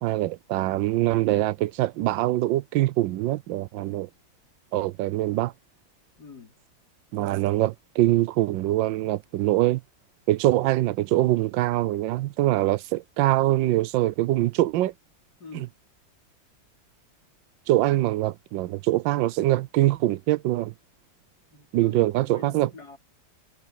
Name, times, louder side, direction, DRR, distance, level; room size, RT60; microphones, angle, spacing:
voice 1, 0.0-4.1 4.7-5.5 7.1-9.8 10.3-14.9 17.7-20.7 21.7-22.7, right 16 dB, 85° right, 1.3 m, -23 dB
voice 2, 6.2-6.5 15.4-15.7 21.5-22.0 22.3-23.0, left 4 dB, 60° left, 4.8 m, -45 dB
omnidirectional pair, 2.0 m